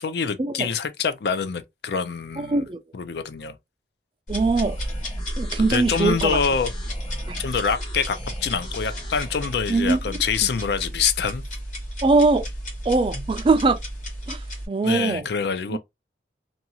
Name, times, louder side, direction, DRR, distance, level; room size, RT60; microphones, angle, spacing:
voice 1, 0.0-2.6 2.9-3.5 5.6-6.7 7.4-11.4 14.8-15.8, left 6 dB, 65° left, 0.4 m, -25 dB
voice 2, 2.4-2.8 4.3-4.8 5.4-6.4 7.3-7.4 9.7-10.0 12.0-12.5 12.9-13.8 14.3-15.2 15.7-15.8, right 3 dB, 30° right, 0.3 m, -21 dB
sound 1, 4.3-14.7, equal, 45° left, 1.1 m, -32 dB
sound 2, 4.5-9.5, left 1 dB, 25° left, 0.9 m, -42 dB
2.7 x 2.3 x 2.8 m
head